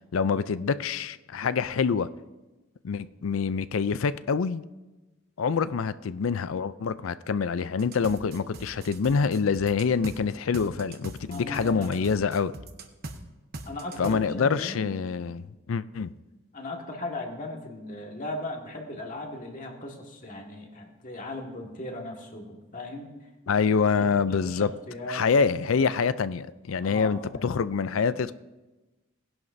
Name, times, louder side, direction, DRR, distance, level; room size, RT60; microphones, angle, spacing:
voice 1, 0.1-2.1 2.8-4.6 5.4-12.5 14.0-16.1 23.5-24.7 25.1-28.3, left 5 dB, 85° left, 0.5 m, -26 dB
sound 1, 7.8-10.2 10.5-13.2 13.5-14.1, right 2 dB, 50° right, 1.0 m, -41 dB
voice 2, 11.3-12.2 13.7-14.9 16.5-23.1 23.9-25.2 26.8-27.6, left 1 dB, 40° left, 1.8 m, -38 dB
19.5 x 11.0 x 2.7 m
head